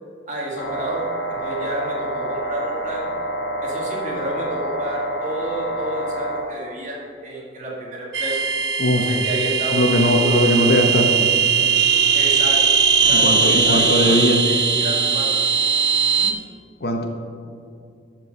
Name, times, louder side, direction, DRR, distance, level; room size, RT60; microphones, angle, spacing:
voice 1, 0.3-1.1 1.4-3.1 3.6-8.4 8.9-10.3 12.1-12.6 13.0-15.3 16.2-16.3, right 1 dB, 40° right, -3 dB, 1.7 m, -30 dB
sound 1, 0.6-6.4, right 1 dB, 85° left, 1.5 m, -27 dB
sound 2, 8.1-16.3, right 6 dB, 80° right, 0.7 m, -19 dB
voice 2, 9.7-11.3 13.1-14.4 16.8-17.1, left 1 dB, 55° left, 3 dB, 0.9 m, -19 dB
12.5 x 4.6 x 5.3 m, 2.3 s
head